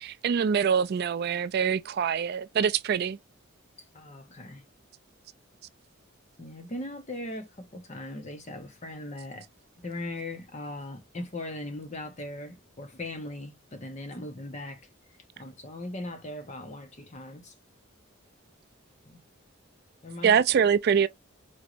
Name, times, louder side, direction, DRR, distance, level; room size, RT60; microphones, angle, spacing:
voice 1, 0.0-3.2 20.2-21.1, right 7 dB, 50° right, 0.3 m, -24 dB
voice 2, 3.9-4.6 6.4-9.5 9.8-14.8 15.4-17.5 19.0-19.2 20.0-20.4, left 1 dB, 35° left, 0.9 m, -39 dB
4.4 x 3.0 x 2.5 m
head